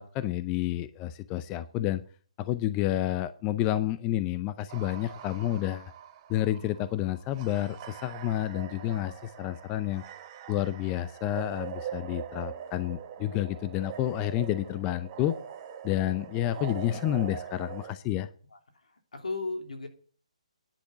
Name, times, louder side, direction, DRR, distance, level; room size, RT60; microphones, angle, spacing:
voice 1, 0.0-2.0 2.4-5.9 6.3-10.0 10.5-15.4 15.8-18.3, left 13 dB, 20° left, 13 dB, 0.5 m, -30 dB
sound 1, 4.7-17.9, right 9 dB, 30° right, 1.4 m, -43 dB
voice 2, 18.5-19.9, left 3 dB, 80° left, 5 dB, 2.8 m, -36 dB
10.5 x 6.6 x 8.9 m, 0.43 s
hypercardioid pair, 150°, 4 cm